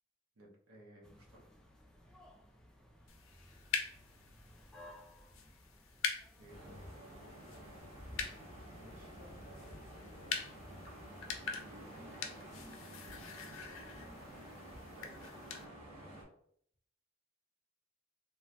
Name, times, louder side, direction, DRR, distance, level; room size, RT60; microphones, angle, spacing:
voice 1, 0.4-1.5 6.4-6.6 8.7-9.1 11.6-12.5 14.8-15.3, right 1 dB, 90° right, -1 dB, 0.8 m, -59 dB
sound 1, 1.0-7.8, left 1 dB, 5° left, 0.3 m, -59 dB
voice 2, 2.8-3.1 6.6-7.8 9.0-10.9 13.4-13.8 16.1-16.3, equal, 50° right, -3 dB, 1.1 m, -62 dB
sound 2, 3.1-15.6, left 6 dB, 70° left, 0.4 m, -45 dB
sound 3, 6.5-16.2, equal, 30° right, 0.8 m, -51 dB
3.1 x 2.3 x 2.5 m, 0.67 s
head